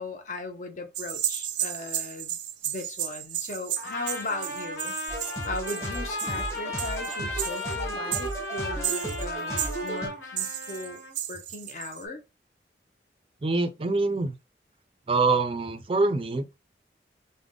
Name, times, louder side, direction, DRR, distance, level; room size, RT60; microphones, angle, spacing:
voice 1, 0.0-2.4 2.6-4.9 5.4-11.0 11.3-12.2, left 2 dB, 45° left, 0.6 m, -37 dB
sound 1, 0.9-7.8 8.1-9.3 9.6-9.9 10.4-12.0, right 11 dB, 85° right, 0.5 m, -33 dB
Trumpet, 3.8-11.1, left 2 dB, 75° left, 1.0 m, -36 dB
sound 2, 5.1-10.1, right 2 dB, 15° left, 1.0 m, -35 dB
voice 2, 13.4-14.4 15.1-16.5, right 3 dB, 30° right, 0.4 m, -25 dB
3.4 x 2.1 x 3.6 m
head